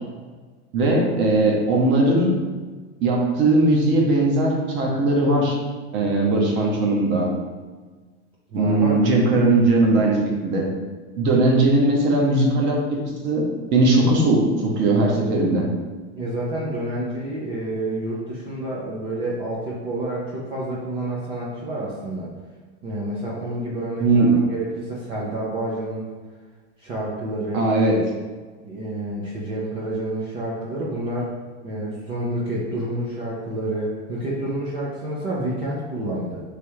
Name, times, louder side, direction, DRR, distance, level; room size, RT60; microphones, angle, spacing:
voice 1, 0.7-2.3 3.0-5.6 5.9-7.3 8.5-10.7 11.2-13.0 13.2-13.4 13.7-15.7 24.0-24.3 27.5-28.0, right 2 dB, 35° right, -1 dB, 0.9 m, -19 dB
voice 2, 8.5-9.0 16.1-22.3 22.8-26.1 26.8-27.6 28.6-31.3 31.6-36.4, right 1 dB, 15° right, -5 dB, 0.3 m, -29 dB
3.4 x 3.1 x 4.6 m, 1.4 s
supercardioid pair, 160°, 34 cm